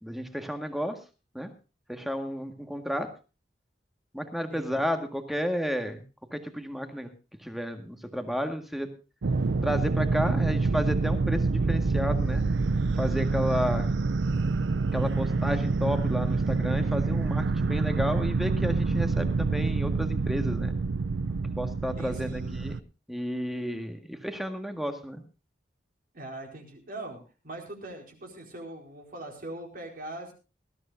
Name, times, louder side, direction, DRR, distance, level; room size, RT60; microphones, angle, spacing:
voice 1, 0.0-1.0 1.3-1.5 1.9-3.1 4.1-6.0 6.3-7.1 7.4-8.9 9.6-12.4 13.0-13.9 14.9-20.7 21.6-22.8 23.1-25.2, equal, ahead, 6 dB, 1.7 m, -32 dB
sound 1, 9.2-22.8, right 3 dB, 85° right, 0.6 m, -27 dB
voice 2, 22.0-22.4 26.1-30.3, right 1 dB, 55° right, 2 dB, 4.5 m, -41 dB
20.5 x 14.0 x 2.7 m, 0.33 s
head